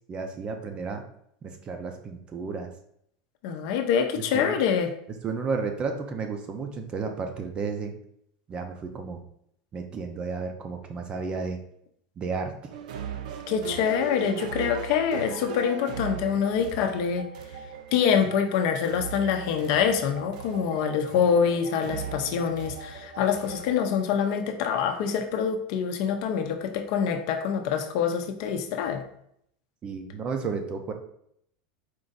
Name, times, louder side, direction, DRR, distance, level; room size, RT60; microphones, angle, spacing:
voice 1, 0.1-1.0 1.4-2.7 4.1-4.6 5.2-7.9 8.5-9.2 9.7-11.6 12.2-12.5 29.8-30.9, right 4 dB, 25° right, 5 dB, 0.5 m, -32 dB
voice 2, 3.4-4.9 13.5-17.3 17.9-29.0, left 7 dB, 55° left, 6 dB, 0.6 m, -25 dB
sound 1, 12.7-23.7, right 7 dB, 85° right, 0.4 m, -38 dB
4.5 x 2.6 x 3.9 m, 0.71 s
supercardioid pair, 155°, 4 cm